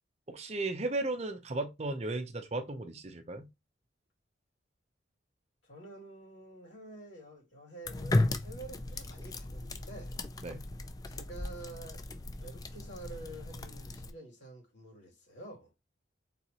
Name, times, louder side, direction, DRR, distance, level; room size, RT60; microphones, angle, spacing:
voice 1, 0.3-3.5 10.4-10.6, right 2 dB, 35° right, 0.6 m, -35 dB
voice 2, 5.6-10.2 11.1-12.1 12.4-15.7, right 2 dB, 70° left, 2.5 m, -49 dB
sound 1, 7.8-14.1, left 2 dB, 20° left, 0.3 m, -35 dB
4.4 x 3.8 x 2.9 m
head